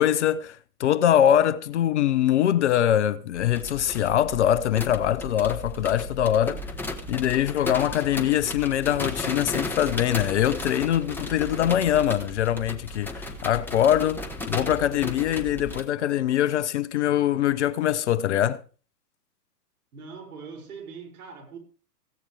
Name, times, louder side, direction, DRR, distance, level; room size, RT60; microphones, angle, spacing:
voice 1, 0.0-6.6 7.1-18.6, left 11 dB, 45° left, 0.8 m, -23 dB
sound 1, 3.3-15.8, left 1 dB, 5° left, 1.2 m, -35 dB
voice 2, 19.9-21.6, right 5 dB, 60° right, 6.5 m, -41 dB
16.5 x 15.5 x 3.4 m
figure-of-eight pair, 125°, 50 cm